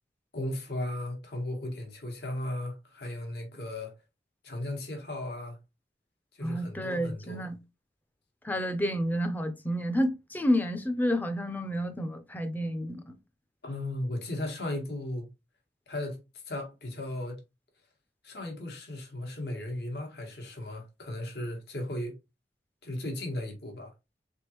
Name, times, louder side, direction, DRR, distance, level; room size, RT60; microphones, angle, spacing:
voice 1, 0.3-3.9 4.4-5.6 6.4-7.5 13.6-15.3 15.9-17.4 18.2-22.1 22.8-23.9, left 1 dB, 70° left, 1.4 m, -36 dB
voice 2, 6.4-7.6 8.4-13.1, equal, 10° left, 0.5 m, -30 dB
3.9 x 3.5 x 2.9 m
head